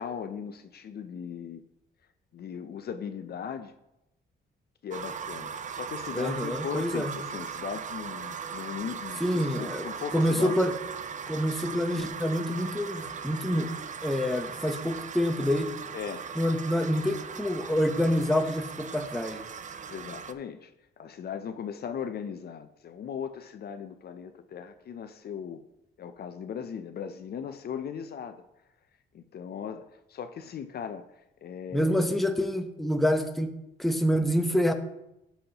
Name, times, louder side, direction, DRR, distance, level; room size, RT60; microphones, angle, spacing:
voice 1, 0.0-1.6 2.3-3.7 4.8-10.6 15.9-16.3 19.9-20.7 21.0-25.6 26.0-28.4 29.1-31.0 31.4-32.3, left 7 dB, 55° left, 9 dB, 0.6 m, -38 dB
sound 1, 4.9-20.3, right 6 dB, 40° right, 0.5 m, -39 dB
voice 2, 6.1-7.1 9.2-9.9 10.1-10.7 11.3-13.7 14.0-15.7 16.4-19.4 31.7-33.5 33.8-34.7, equal, ahead, 6 dB, 0.8 m, -27 dB
12.5 x 5.6 x 2.9 m, 0.88 s
cardioid pair, 90°, 20 cm